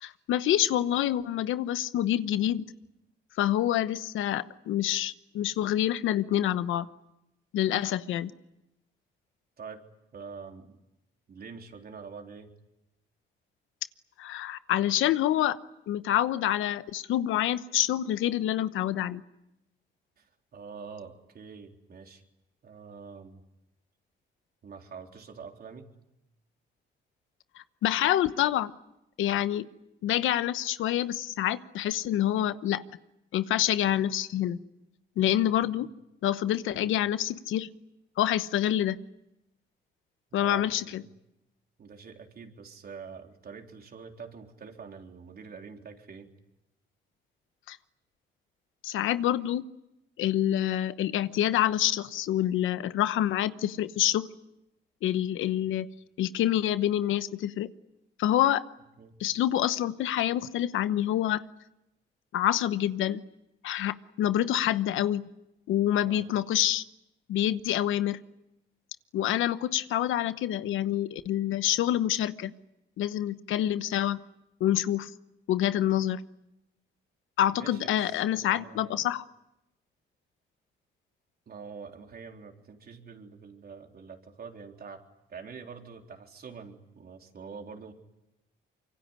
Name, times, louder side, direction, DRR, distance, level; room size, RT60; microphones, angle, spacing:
voice 1, 0.0-2.7 3.4-6.9 7.5-8.3 14.2-15.6 15.9-19.2 27.8-28.7 29.2-29.7 30.0-32.8 33.3-34.6 35.2-35.9 36.2-37.7 38.2-39.0 40.3-41.0 47.7-47.8 48.8-49.6 50.2-54.3 55.0-55.9 56.2-57.7 58.2-58.6 59.2-61.4 62.3-63.2 63.6-65.2 65.7-66.8 67.3-68.2 69.1-72.5 73.0-74.2 74.6-75.1 75.5-76.2 77.4-79.2, left 12 dB, 85° left, 13 dB, 1.0 m, -27 dB
voice 2, 10.1-10.8 11.3-12.5 20.2-22.2 22.6-23.4 24.6-25.9 36.8-36.9 40.3-41.1 41.8-46.3 55.4-55.6 59.0-59.2 66.0-66.3 77.5-79.0 81.5-85.0 85.3-87.9, right 5 dB, 50° right, 3 dB, 3.9 m, -45 dB
25.5 x 24.0 x 9.9 m, 0.89 s
cardioid pair, 90°, 20 cm